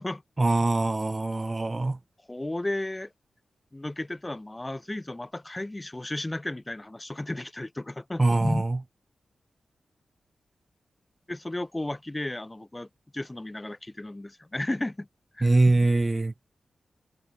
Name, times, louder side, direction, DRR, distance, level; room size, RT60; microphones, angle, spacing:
voice 1, 0.4-2.0 8.2-8.8 15.4-16.3, right 2 dB, 25° right, 0.7 m, -23 dB
voice 2, 2.3-3.1 3.7-8.6 11.3-12.9 13.1-15.1 15.4-15.5, left 1 dB, 15° left, 1.0 m, -33 dB
wide cardioid pair, 130°, 0 cm